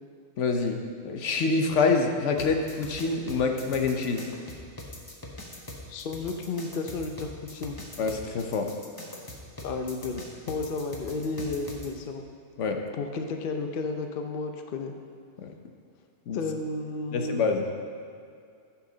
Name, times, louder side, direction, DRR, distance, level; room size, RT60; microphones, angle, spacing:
voice 1, 0.4-0.8 1.0-4.2 8.0-8.7 12.6-12.8 15.4-15.5 16.3-16.4 17.1-17.7, left 4 dB, 85° left, 4 dB, 1.1 m, -26 dB
sound 1, 2.4-11.9, left 1 dB, 20° left, 1.1 m, -42 dB
voice 2, 5.9-7.8 9.6-12.2 13.0-14.9 16.3-17.4, left 3 dB, 55° left, 5 dB, 0.8 m, -32 dB
14.5 x 5.8 x 3.9 m, 2.4 s
omnidirectional pair, 1.2 m